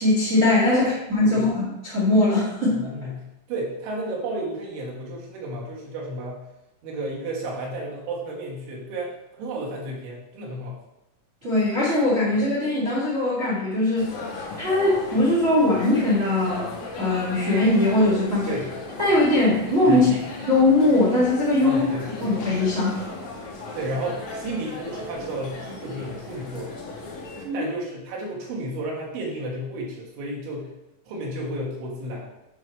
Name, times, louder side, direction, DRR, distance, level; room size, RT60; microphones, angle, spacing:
voice 1, 0.0-2.8 11.4-14.1 14.5-16.7 16.9-18.5 19.0-20.1 20.5-21.8 22.2-23.1 27.4-27.7, left 2 dB, 55° right, -7 dB, 0.8 m, -21 dB
voice 2, 0.7-1.5 2.7-6.5 6.8-10.8 18.5-18.7 19.9-20.3 21.6-22.3 23.7-26.7 27.5-30.7 31.1-32.3, right 1 dB, 70° right, -4 dB, 3.6 m, -32 dB
sound 1, 13.9-27.4, left 3 dB, 80° left, 1.7 m, -37 dB
9.1 x 5.4 x 3.3 m, 0.93 s
omnidirectional pair, 5.8 m